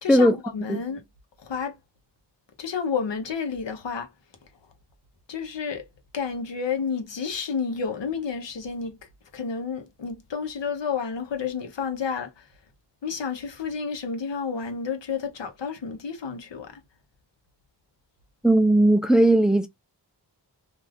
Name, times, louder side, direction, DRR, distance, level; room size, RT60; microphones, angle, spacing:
voice 1, 0.0-1.0 1.4-1.7 2.6-4.1 5.3-5.9 6.1-9.0 9.3-12.5 13.0-16.8, left 6 dB, 80° left, 0.9 m, -30 dB
voice 2, 18.4-19.7, right 1 dB, ahead, 0.4 m, -17 dB
2.6 x 2.4 x 3.2 m
wide cardioid pair, 55°, 43 cm